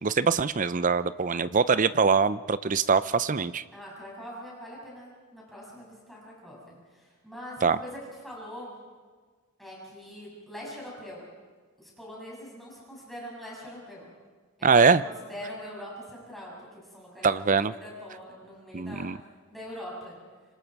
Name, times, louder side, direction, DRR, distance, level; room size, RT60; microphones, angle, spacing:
voice 1, 0.0-3.6 7.6-7.8 14.6-15.0 17.2-17.7 18.7-19.2, right 5 dB, 35° right, 15 dB, 0.6 m, -23 dB
voice 2, 3.7-8.7 9.6-11.3 11.8-14.1 14.6-14.7 15.0-19.1 19.5-20.2, equal, ahead, -5 dB, 7.3 m, -43 dB
27.0 x 25.0 x 4.7 m, 1.5 s
head